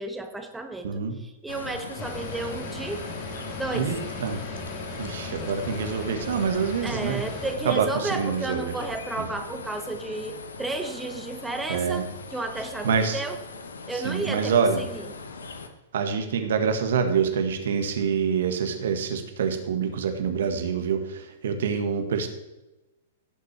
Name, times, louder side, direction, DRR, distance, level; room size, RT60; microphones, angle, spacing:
voice 1, 0.0-3.1 3.6-3.9 6.8-13.4 13.9-15.1, right 2 dB, 5° right, 5 dB, 1.4 m, -33 dB
voice 2, 0.8-1.2 3.7-4.4 5.0-7.2 7.7-8.7 9.2-9.3 11.7-12.0 12.8-13.2 14.0-14.8 15.9-22.3, right 6 dB, 65° right, 6 dB, 1.6 m, -26 dB
sound 1, 1.5-15.7, left 4 dB, 75° left, 1.1 m, -40 dB
sound 2, 2.0-7.5, left 3 dB, 40° left, 3.4 m, -37 dB
17.0 x 6.6 x 3.4 m, 1.0 s
figure-of-eight pair, 105°, 0 cm